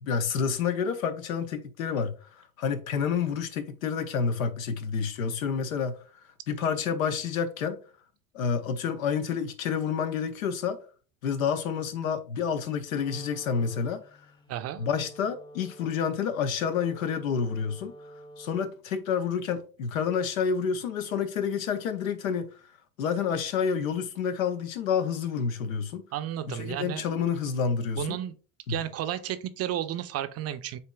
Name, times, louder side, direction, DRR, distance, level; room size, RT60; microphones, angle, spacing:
voice 1, 0.0-6.0 6.5-7.8 8.3-10.8 11.2-14.0 14.8-17.9 18.4-22.5 23.0-26.0 26.5-28.2 28.7-28.8, left 6 dB, 90° left, 0.7 m, -29 dB
Wind instrument woodwind instrument, 12.9-18.9, right 1 dB, 10° left, 0.7 m, -49 dB
voice 2, 14.5-14.8 26.1-27.0 28.0-28.3 28.7-30.8, right 11 dB, 40° right, 0.5 m, -32 dB
7.8 x 2.7 x 2.2 m
hypercardioid pair, 80°, 40 cm